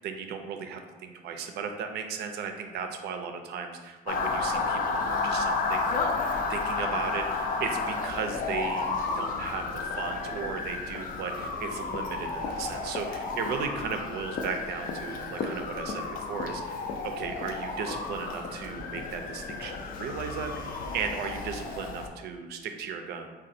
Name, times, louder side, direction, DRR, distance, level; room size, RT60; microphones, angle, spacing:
voice 1, 0.0-23.3, right 6 dB, 75° right, 6 dB, 0.4 m, -36 dB
Motor vehicle (road) / Siren, 4.1-22.1, left 4 dB, 55° left, 0.4 m, -32 dB
4.1 x 2.2 x 2.6 m, 1.3 s
cardioid pair, 110°, 17 cm